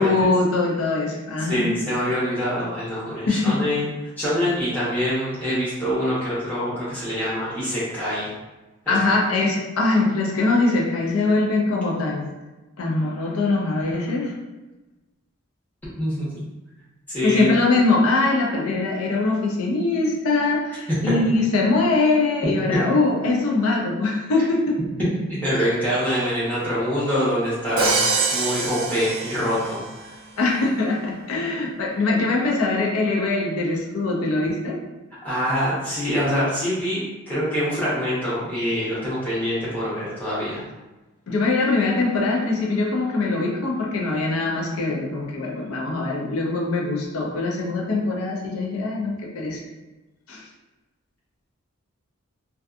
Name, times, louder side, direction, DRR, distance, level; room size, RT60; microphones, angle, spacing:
voice 1, 0.0-2.0 3.3-3.7 8.9-12.3 12.8-14.3 17.2-24.8 30.4-34.8 41.3-49.6 50.3-50.5, left 3 dB, 90° left, -1 dB, 0.5 m, -22 dB
voice 2, 1.4-3.9 4.2-8.3 8.9-9.0 16.0-16.3 17.1-17.5 20.9-21.0 22.7-22.8 25.0-30.2 35.2-40.6, equal, 10° left, -10 dB, 0.9 m, -25 dB
Crash cymbal, 27.8-30.0, right 3 dB, 75° right, 0.4 m, -24 dB
2.5 x 2.3 x 2.4 m, 1.1 s
head